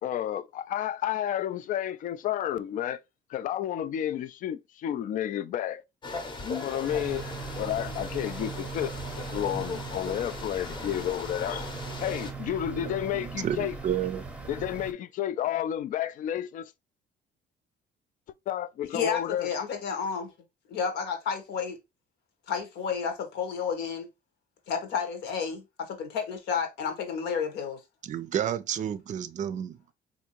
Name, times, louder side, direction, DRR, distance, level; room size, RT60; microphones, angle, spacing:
voice 1, 0.0-3.0 3.3-5.8 6.4-7.2 7.6-8.9 9.3-11.7 12.0-13.8 14.5-16.7 18.5-19.5, left 11 dB, 50° left, 0.4 m, -31 dB
sound 1, 6.0-12.3, left 3 dB, 25° left, 0.8 m, -39 dB
sound 2, 6.9-14.9, right 5 dB, 5° right, 0.7 m, -39 dB
voice 2, 12.7-14.3 28.0-29.9, right 9 dB, 45° right, 0.4 m, -31 dB
voice 3, 18.9-20.3 20.7-21.8 22.5-24.1 24.7-27.8, left 6 dB, 80° left, 1.1 m, -31 dB
3.5 x 2.6 x 2.9 m
cardioid pair, 110°, 17 cm